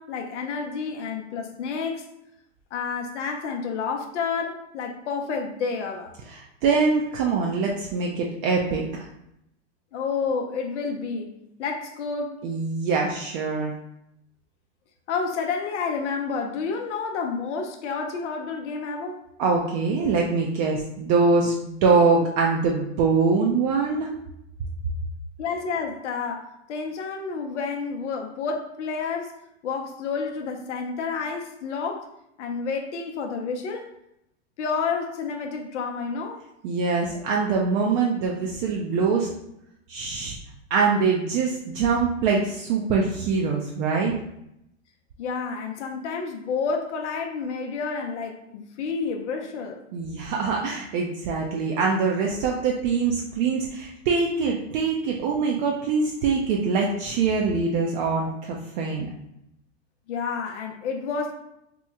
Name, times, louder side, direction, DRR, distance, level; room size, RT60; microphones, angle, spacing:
voice 1, 0.0-2.1 2.7-6.1 9.9-11.3 11.6-12.4 15.1-19.2 25.4-29.3 29.6-32.1 32.4-33.9 34.6-36.4 45.2-49.8 60.1-61.3, left 5 dB, 85° left, 3 dB, 0.6 m, -30 dB
voice 2, 6.3-8.8 12.4-13.7 19.4-24.1 36.6-39.3 39.9-40.4 40.7-44.1 49.9-59.1, right 4 dB, 45° right, -1 dB, 0.4 m, -23 dB
2.9 x 2.0 x 3.4 m, 0.81 s
hypercardioid pair, 130°, 35 cm